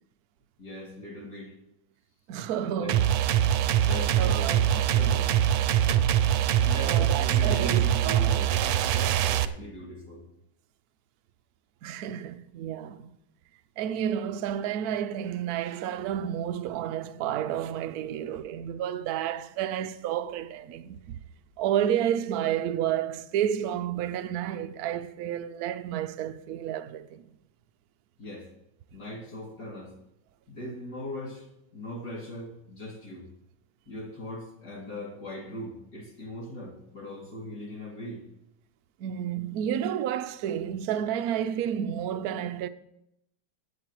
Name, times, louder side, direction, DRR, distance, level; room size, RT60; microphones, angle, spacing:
voice 1, 0.6-1.5 2.6-2.9 3.6-5.3 6.6-10.2 28.2-28.5 28.9-29.9 30.5-31.5 31.7-33.3 33.9-38.2, left 1 dB, 55° left, 2.8 m, -39 dB
voice 2, 2.3-3.0 3.4-3.5 4.2-4.6 5.8-5.9 6.8-8.4 11.8-13.2 13.8-21.2 21.6-27.2 39.0-42.7, right 10 dB, 70° right, 0.9 m, -31 dB
sound 1, 2.9-9.4, right 10 dB, 85° right, 1.4 m, -23 dB
22.0 x 8.5 x 3.0 m
omnidirectional pair, 2.1 m